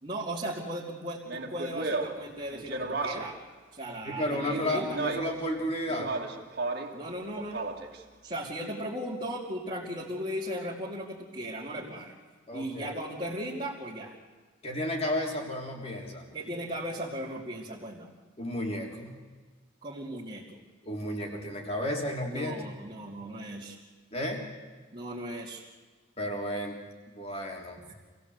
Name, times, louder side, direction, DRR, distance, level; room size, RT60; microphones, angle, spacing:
voice 1, 0.0-3.3 3.7-5.0 6.9-7.6 8.2-12.1 12.5-14.1 16.3-18.1 19.8-20.4 22.3-23.8 24.9-25.6 27.9-28.0, right 1 dB, 30° right, -6 dB, 2.7 m, -37 dB
Speech, 1.2-3.4 4.2-5.4 5.9-7.0 7.3-8.0, right 3 dB, 50° right, 2.2 m, -34 dB
voice 2, 4.0-6.1 12.5-13.0 14.6-16.2 18.4-19.2 20.8-22.6 24.1-24.4 26.2-26.8 27.2-27.8, left 1 dB, 30° left, 1 dB, 3.5 m, -32 dB
26.5 x 17.0 x 8.1 m, 1.4 s
head